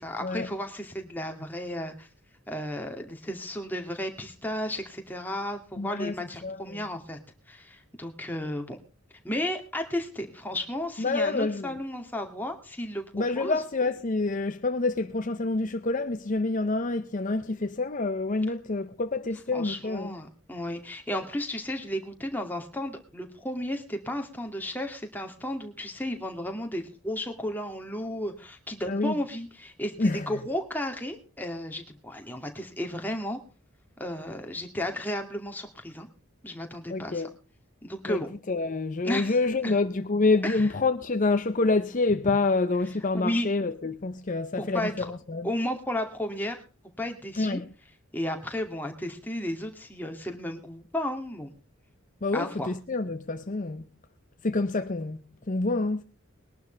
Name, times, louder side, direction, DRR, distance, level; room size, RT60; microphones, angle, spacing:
voice 1, 0.0-2.1 2.5-7.2 7.5-8.8 9.2-13.6 19.5-33.4 34.0-36.1 36.4-37.2 37.8-38.3 39.0-39.4 39.6-39.8 40.4-40.6 43.1-43.5 44.6-45.1 45.4-46.6 47.0-47.6 48.1-51.5 52.3-52.7, left 1 dB, 10° left, 2.4 m, -33 dB
voice 2, 5.8-6.8 11.0-11.7 13.1-20.2 28.9-29.1 30.0-30.3 36.9-37.3 38.0-38.2 38.5-45.5 47.3-47.7 52.2-53.9 54.4-56.0, left 3 dB, 40° left, 0.7 m, -27 dB
21.0 x 11.5 x 3.3 m
head